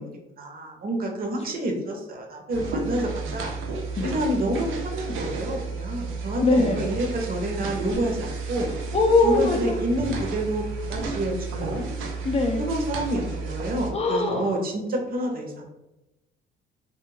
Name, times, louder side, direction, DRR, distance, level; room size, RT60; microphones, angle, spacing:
voice 1, 0.0-3.5 4.0-8.7 9.2-11.9 12.6-15.7, right 1 dB, 50° right, 1 dB, 0.7 m, -28 dB
sound 1, 2.5-13.9, right 4 dB, 85° right, 0.5 m, -32 dB
voice 2, 6.4-6.8 8.9-9.8 12.2-12.6 13.9-14.5, left 2 dB, 30° left, 3 dB, 0.4 m, -21 dB
2.3 x 2.2 x 3.1 m, 0.97 s
cardioid pair, 90°, 20 cm